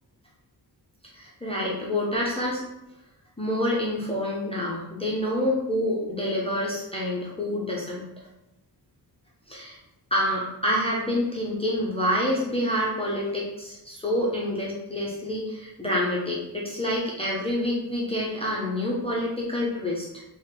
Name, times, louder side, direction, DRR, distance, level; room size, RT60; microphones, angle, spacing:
voice 1, 1.1-2.6 3.4-8.0 9.5-9.8 10.1-20.2, left 1 dB, 15° left, -5 dB, 0.4 m, -27 dB
3.3 x 2.1 x 2.8 m, 0.89 s
wide cardioid pair, 155°, 40 cm